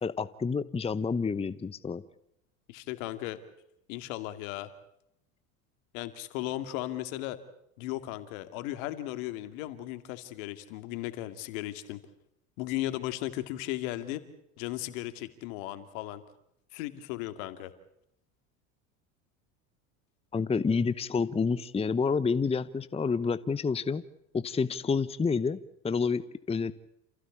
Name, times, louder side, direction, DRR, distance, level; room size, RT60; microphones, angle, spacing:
voice 1, 0.0-2.0 20.3-24.0 24.3-25.6 25.8-26.7, left 5 dB, 15° left, 14 dB, 0.9 m, -29 dB
voice 2, 2.7-3.4 3.9-4.7 5.9-7.4 7.8-12.0 12.6-14.2 14.6-16.2 16.7-17.7, left 15 dB, 70° left, 10 dB, 2.4 m, -36 dB
28.5 x 15.5 x 8.5 m, 0.79 s
hypercardioid pair, 95°, 41 cm